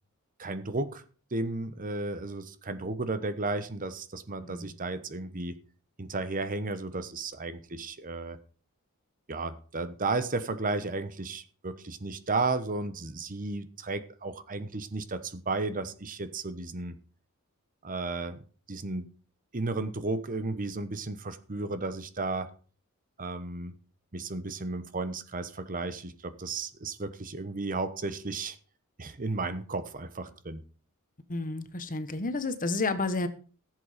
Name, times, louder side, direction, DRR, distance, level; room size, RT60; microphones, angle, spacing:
voice 1, 0.4-1.0 1.3-5.6 6.0-8.4 9.3-17.0 17.8-18.4 18.7-19.1 19.5-22.5 23.2-23.7 24.1-28.6 29.0-30.6, right 3 dB, 40° right, 12 dB, 1.1 m, -33 dB
voice 2, 31.3-33.3, left 3 dB, 40° left, 11 dB, 1.2 m, -31 dB
15.0 x 7.7 x 5.1 m, 0.39 s
head